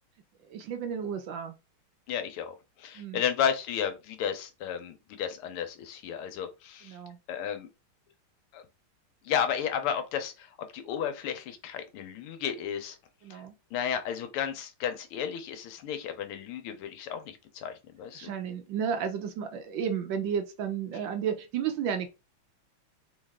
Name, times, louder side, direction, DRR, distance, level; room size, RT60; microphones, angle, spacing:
voice 1, 0.4-1.6 2.9-3.2 6.8-7.2 13.2-13.5 18.2-22.1, right 7 dB, 70° right, 1.3 m, -32 dB
voice 2, 2.1-7.0 7.3-7.7 8.5-8.6 9.2-13.0 13.3-13.4 13.7-18.3, left 8 dB, 85° left, 1.7 m, -33 dB
3.9 x 3.2 x 3.6 m
omnidirectional pair, 2.4 m